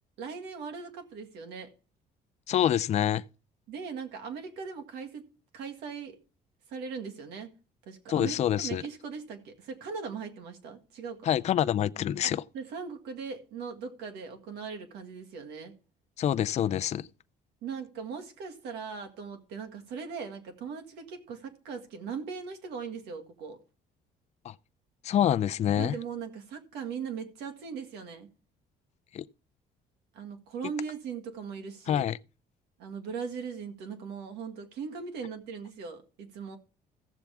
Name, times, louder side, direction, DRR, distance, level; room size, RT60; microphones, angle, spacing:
voice 1, 0.2-1.7 3.7-5.3 5.5-6.2 6.7-7.5 7.9-11.3 12.5-15.7 17.6-23.6 25.7-28.3 30.1-32.1 32.8-36.6, right 6 dB, 85° right, 1.9 m, -39 dB
voice 2, 2.5-3.2 8.1-8.8 11.2-12.4 16.2-17.1 24.4-24.5 25.0-25.9 29.1-29.2 31.9-32.2, left 10 dB, 40° left, 0.4 m, -26 dB
15.0 x 7.1 x 3.5 m
cardioid pair, 110°, 17 cm